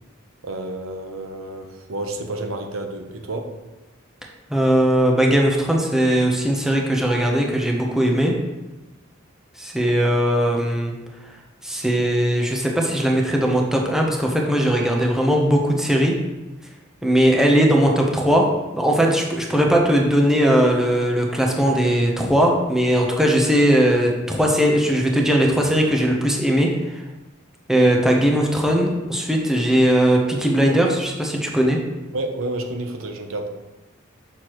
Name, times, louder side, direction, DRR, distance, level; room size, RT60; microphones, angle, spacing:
voice 1, 0.4-3.5 32.1-33.5, right 2 dB, 90° right, 4 dB, 0.8 m, -30 dB
voice 2, 4.5-8.3 9.6-10.9 11.6-16.1 17.0-18.5 18.8-27.0 27.7-31.8, equal, ahead, -1 dB, 0.8 m, -19 dB
6.5 x 6.2 x 3.0 m, 1.1 s
head